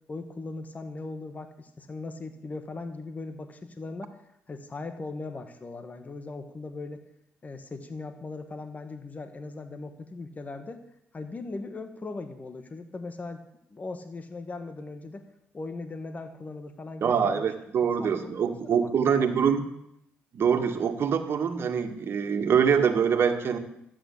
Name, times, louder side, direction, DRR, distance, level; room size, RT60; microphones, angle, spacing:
voice 1, 0.1-4.2 4.5-7.0 7.4-10.8 11.1-13.4 13.7-15.2 15.5-17.4 18.0-19.4, left 3 dB, 35° left, 7 dB, 1.8 m, -39 dB
voice 2, 17.0-19.6 20.3-23.6, right 7 dB, 55° right, 6 dB, 1.9 m, -24 dB
13.0 x 9.3 x 8.6 m, 0.77 s
supercardioid pair, 65°, 5 cm